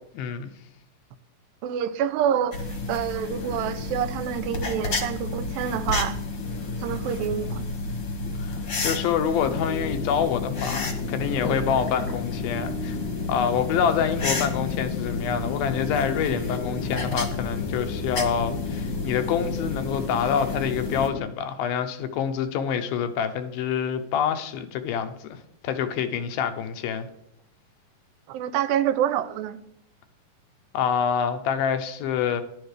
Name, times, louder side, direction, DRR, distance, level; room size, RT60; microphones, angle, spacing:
voice 1, 0.1-0.5 8.4-13.0 13.3-25.4 25.6-27.1 30.7-32.4, left 7 dB, 90° left, 2.7 m, -26 dB
voice 2, 1.6-2.5 2.9-6.2 6.8-7.6 28.3-29.6, right 9 dB, 85° right, 2.3 m, -27 dB
sound 1, 2.5-21.1, left 3 dB, 50° left, 1.4 m, -31 dB
sound 2, 9.4-21.2, left 5 dB, 70° left, 1.9 m, -34 dB
11.5 x 11.0 x 3.3 m
omnidirectional pair, 4.1 m